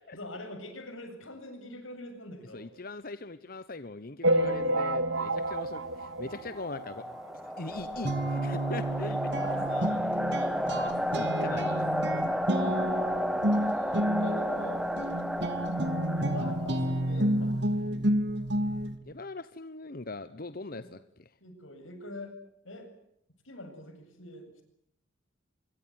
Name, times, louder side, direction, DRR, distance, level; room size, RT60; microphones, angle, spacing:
voice 1, 0.1-2.7 6.7-7.0 9.0-11.0 11.2-11.8 13.3-14.9 16.2-17.6 20.7-20.9 21.4-22.4 22.6-22.9 23.4-24.6, left 1 dB, 90° left, 7 dB, 8.0 m, -44 dB
voice 2, 2.5-7.1 7.6-9.2 11.2-11.9 19.1-21.3, left 3 dB, 50° left, 13 dB, 1.0 m, -41 dB
sound 1, 4.2-7.1 7.6-7.7 7.8-8.0 8.3-8.4 9.3-9.4 9.8-9.9, right 1 dB, 80° right, 2.1 m, -29 dB
sound 2, 6.3-17.2, equal, ahead, 1.5 m, -32 dB
Guitar, 7.7-19.0, right 1 dB, 60° right, 2.7 m, -30 dB
25.0 x 23.5 x 9.5 m, 0.72 s
head